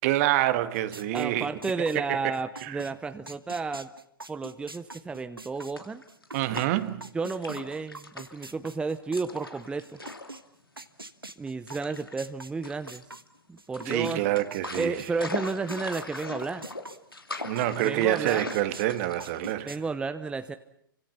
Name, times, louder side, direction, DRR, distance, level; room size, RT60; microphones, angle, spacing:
voice 1, 0.0-1.5 2.2-2.3 2.6-2.8 6.3-7.1 13.9-14.9 17.4-19.7, right 14 dB, 40° right, 1.7 m, -27 dB
sound 1, 0.7-6.7 7.0-14.2 14.5-17.9 18.3-19.8, right 2 dB, 85° right, 1.4 m, -44 dB
voice 2, 1.1-3.9 4.3-6.0 7.1-10.0 11.4-13.0 13.5-14.2 14.7-16.6 17.8-18.5 19.6-20.5, right 4 dB, 10° right, 0.9 m, -32 dB
sound 2, 5.6-6.9 7.3-8.5 9.2-10.4 10.6-10.8 11.7-12.2 12.6-13.3 13.7-19.6, left 2 dB, 85° left, 2.9 m, -39 dB
30.0 x 25.5 x 5.9 m
figure-of-eight pair, 110°, 12 cm